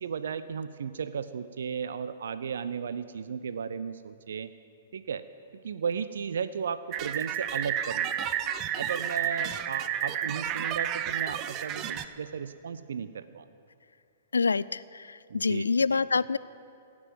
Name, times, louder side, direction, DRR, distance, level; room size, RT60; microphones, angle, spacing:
voice 1, 0.0-4.5 4.9-5.2 5.6-8.3 8.8-13.5 15.3-16.0, right 6 dB, 70° right, 13 dB, 0.5 m, -35 dB
sound 1, 6.9-12.1, right 10 dB, 35° right, 0.6 m, -31 dB
voice 2, 14.3-15.1 15.3-16.4, left 4 dB, 85° left, 18 dB, 0.3 m, -26 dB
17.0 x 6.1 x 9.3 m, 2.4 s
hypercardioid pair, 115°, 0 cm